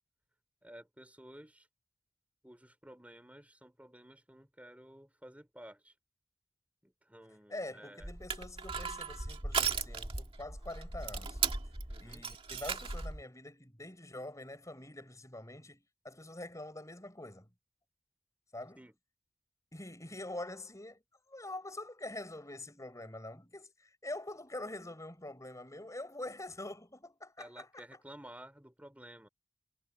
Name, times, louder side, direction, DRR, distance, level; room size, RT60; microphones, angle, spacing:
voice 1, 0.6-1.7 2.4-6.0 6.8-8.1 11.9-12.3 18.8-18.9 27.4-29.3, right 1 dB, 10° right, 4.2 m, -53 dB
voice 2, 7.5-11.4 12.0-17.5 18.5-18.8 19.7-21.0 21.3-27.8, left 1 dB, 20° left, 6.4 m, -45 dB
Crushing, 8.0-13.2, right 5 dB, 30° right, 1.9 m, -37 dB
head